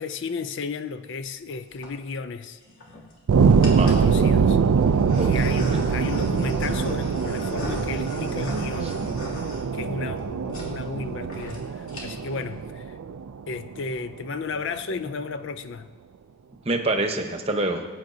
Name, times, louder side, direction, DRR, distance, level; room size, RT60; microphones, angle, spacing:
voice 1, 0.0-2.6 3.7-4.6 5.2-9.0 9.7-12.9 13.5-15.9, left 4 dB, 55° left, 0.4 m, -33 dB
sound 1, 1.5-1.9 2.6-3.1 3.6-4.1 4.8-10.2 10.5-10.7 11.0-11.1 11.3-11.6 11.8-12.3, equal, 70° left, 2.6 m, -36 dB
sound 2, 3.3-14.1, right 5 dB, 80° right, 0.4 m, -23 dB
voice 2, 3.7-4.5 5.2-5.8 16.6-17.9, right 2 dB, 25° right, 0.9 m, -27 dB
19.0 x 9.2 x 2.7 m
head